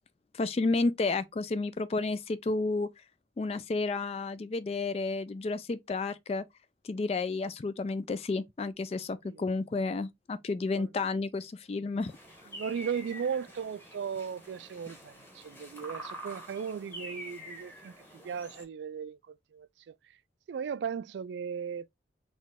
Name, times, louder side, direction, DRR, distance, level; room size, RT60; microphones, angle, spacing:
voice 1, 0.3-2.9 3.4-6.4 6.8-12.1, left 3 dB, 35° left, 0.3 m, -31 dB
sound 1, 12.0-18.6, right 1 dB, 15° left, 1.3 m, -46 dB
voice 2, 12.5-19.9 20.5-21.9, right 7 dB, 80° right, 0.3 m, -37 dB
4.0 x 3.1 x 3.5 m
head